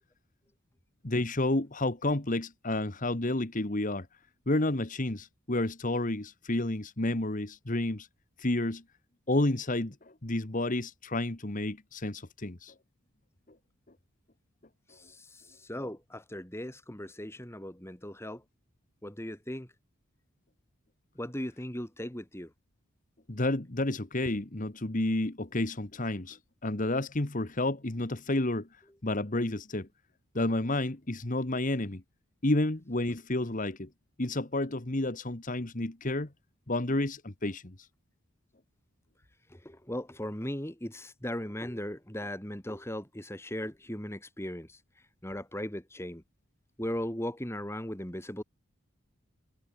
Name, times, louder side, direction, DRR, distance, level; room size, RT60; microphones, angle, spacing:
voice 1, 1.0-4.1 4.5-8.1 8.4-8.8 9.3-12.7 23.3-29.9 30.3-32.0 32.4-33.9 34.2-36.3 36.7-37.7, left 2 dB, 40° left, 1.5 m, -30 dB
voice 2, 14.9-18.4 19.0-19.7 21.2-22.5 39.5-44.8 45.2-46.2 46.8-48.4, left 1 dB, 10° left, 2.4 m, -38 dB
head